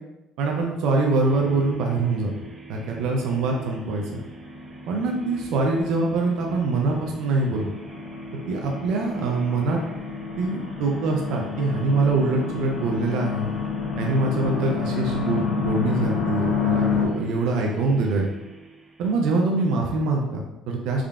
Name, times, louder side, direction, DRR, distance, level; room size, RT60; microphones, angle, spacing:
voice 1, 0.4-2.3 2.7-4.0 4.9-7.7 8.5-9.8 10.4-13.5 14.0-18.3 19.0-21.0, right 3 dB, 75° right, 1 dB, 0.5 m, -24 dB
sound 1, 1.2-19.5, right 3 dB, 25° right, 0.5 m, -42 dB
sound 2, 3.9-17.1, left 6 dB, 60° left, 0.8 m, -30 dB
3.6 x 3.3 x 2.4 m, 0.99 s
cardioid pair, 100°, 0 cm